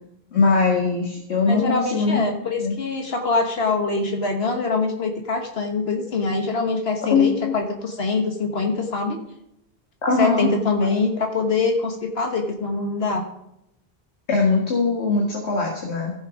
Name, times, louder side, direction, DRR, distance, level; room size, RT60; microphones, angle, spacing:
voice 1, 0.3-2.2 2.5-2.8 7.1-7.5 10.0-10.5 10.8-10.9 14.3-16.1, left 4 dB, 85° left, 0 dB, 2.0 m, -21 dB
voice 2, 1.5-9.2 10.2-13.2, left 3 dB, 70° left, 3 dB, 1.5 m, -24 dB
15.0 x 6.3 x 5.0 m, 0.80 s
omnidirectional pair, 1.1 m